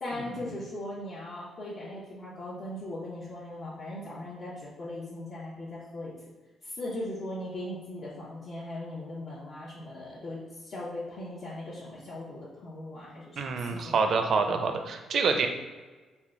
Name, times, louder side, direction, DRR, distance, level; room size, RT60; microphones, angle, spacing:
voice 1, 0.0-6.1 6.6-14.1 14.4-14.6, left 1 dB, 50° left, -8 dB, 0.9 m, -39 dB
voice 2, 13.4-15.5, right 5 dB, 60° right, 5 dB, 0.5 m, -26 dB
3.7 x 2.2 x 3.6 m, 1.3 s
cardioid pair, 90°, 0 cm